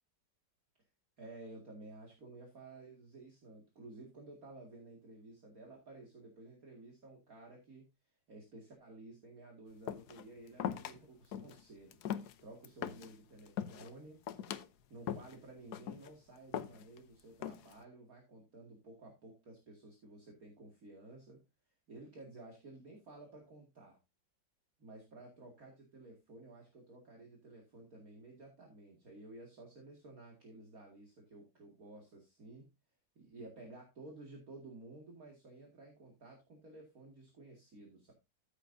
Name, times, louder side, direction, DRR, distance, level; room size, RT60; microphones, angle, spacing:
voice 1, 1.2-7.8 8.3-12.0 12.4-14.2 14.9-21.4 21.9-24.0 24.8-32.7 33.2-38.1, right 2 dB, 50° right, 0 dB, 2.6 m, -54 dB
sound 1, 9.9-10.2 10.6-11.0 11.3-11.6 11.9-13.1 13.5-13.9 14.3-14.7 15.1-15.4 15.7-16.1 16.5-17.0 17.4-17.8, left 9 dB, 65° left, 1.2 m, -40 dB
13.5 x 8.1 x 2.6 m, 0.24 s
omnidirectional pair, 2.0 m